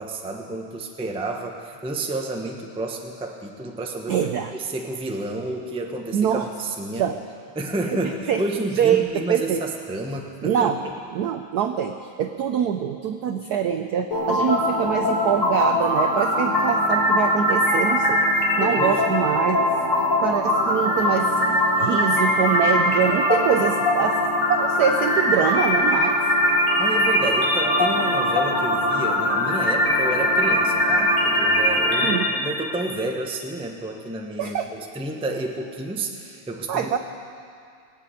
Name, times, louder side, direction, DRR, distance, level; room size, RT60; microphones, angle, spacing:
voice 1, 0.0-4.1 4.5-7.0 7.5-10.9 18.7-19.0 26.8-37.0, right 2 dB, 5° right, 2 dB, 0.5 m, -30 dB
voice 2, 4.1-4.5 6.1-6.5 7.0-7.2 7.9-8.5 8.8-9.6 10.4-10.8 11.1-18.2 18.6-19.7 20.2-24.2 24.5-26.2 32.0-32.3 34.4-34.7 36.7-37.0, right 8 dB, 75° right, 7 dB, 0.9 m, -24 dB
sound 1, 14.1-32.1, left 1 dB, 80° left, 4.1 m, -21 dB
20.0 x 8.4 x 8.4 m, 2.4 s
omnidirectional pair, 2.3 m